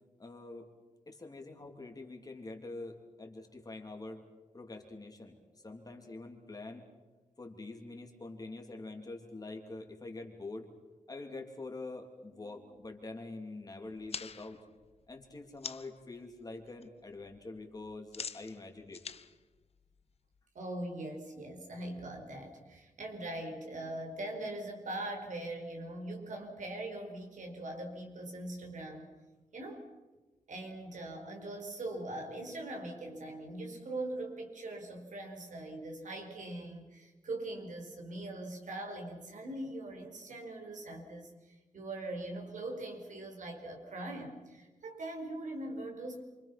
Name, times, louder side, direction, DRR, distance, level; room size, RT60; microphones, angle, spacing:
voice 1, 0.2-0.7 1.1-4.2 4.5-5.4 5.6-6.9 7.4-10.7 11.1-14.6 15.1-19.0, left 2 dB, 30° left, 3 dB, 3.1 m, -45 dB
sound 1, 13.9-16.0 16.4-16.9 17.1-20.4, left 6 dB, 50° left, 0.9 m, -46 dB
voice 2, 20.6-29.1 29.5-29.9 30.5-46.2, right 1 dB, 70° right, 2 dB, 5.2 m, -41 dB
28.5 x 25.5 x 6.0 m, 1.2 s
wide cardioid pair, 130°, 13 cm